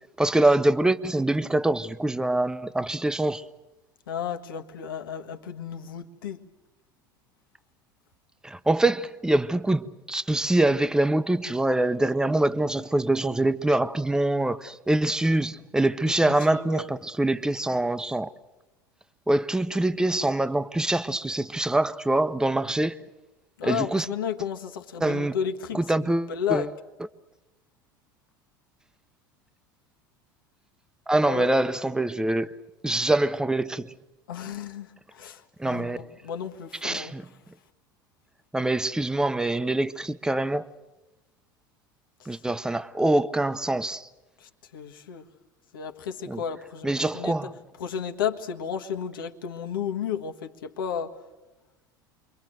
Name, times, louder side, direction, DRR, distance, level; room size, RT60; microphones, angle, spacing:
voice 1, 0.2-3.4 8.4-18.3 19.3-22.9 23.6-24.1 25.0-25.3 25.7-26.7 31.1-32.5 32.8-33.9 35.6-36.1 36.8-37.2 38.5-40.6 42.3-44.1 46.3-46.4 46.8-47.5, right 2 dB, 5° right, 0.9 m, -24 dB
voice 2, 4.1-6.4 16.0-16.9 23.6-26.7 31.2-31.5 34.3-37.1 42.3-42.4 44.4-45.2 45.7-47.4 47.8-51.1, left 8 dB, 75° left, 1.5 m, -33 dB
28.5 x 23.5 x 7.7 m
hypercardioid pair, 75°, 11 cm